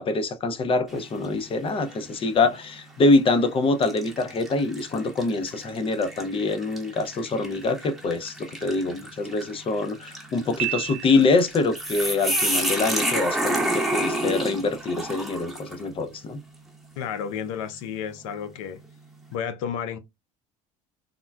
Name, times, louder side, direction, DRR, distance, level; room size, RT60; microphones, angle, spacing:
voice 1, 0.0-16.4, left 3 dB, 35° left, 0.6 m, -24 dB
sound 1, 0.9-1.4 1.9-2.0 3.0-3.2 3.8-15.8, right 1 dB, ahead, 0.9 m, -30 dB
Piano, 10.6-11.7, right 19 dB, 50° right, 0.4 m, -31 dB
voice 2, 17.0-18.8 19.3-20.0, left 8 dB, 80° left, 0.5 m, -31 dB
3.6 x 2.2 x 2.2 m
supercardioid pair, 85°, 16 cm